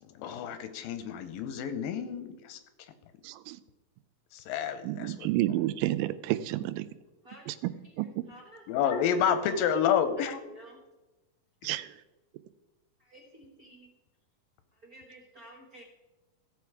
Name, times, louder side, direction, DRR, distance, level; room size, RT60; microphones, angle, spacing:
voice 1, 0.0-2.6 4.3-5.3 8.7-10.4 11.6-11.7, left 8 dB, 90° left, 10 dB, 2.6 m, -29 dB
voice 2, 3.2-3.6 4.8-6.9 7.5-7.7 8.0-8.2 11.6-11.9, right 15 dB, 90° right, 14 dB, 2.3 m, -30 dB
voice 3, 8.3-8.6 10.4-10.8 13.0-13.9 14.8-15.8, equal, 55° right, -2 dB, 1.0 m, -51 dB
15.5 x 6.9 x 4.8 m, 1.1 s
omnidirectional pair, 4.0 m